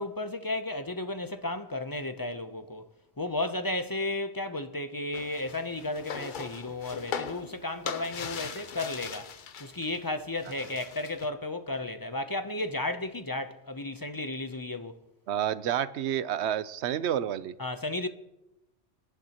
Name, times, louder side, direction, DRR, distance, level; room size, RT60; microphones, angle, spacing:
voice 1, 0.0-2.8 3.2-9.3 9.6-15.0 17.6-18.1, left 2 dB, 25° left, 0.5 m, -33 dB
sound 1, 5.1-10.0 10.3-11.3, left 6 dB, 50° left, 0.8 m, -40 dB
voice 2, 15.3-17.5, right 10 dB, 70° right, 0.9 m, -29 dB
25.5 x 11.5 x 3.0 m
omnidirectional pair, 1.2 m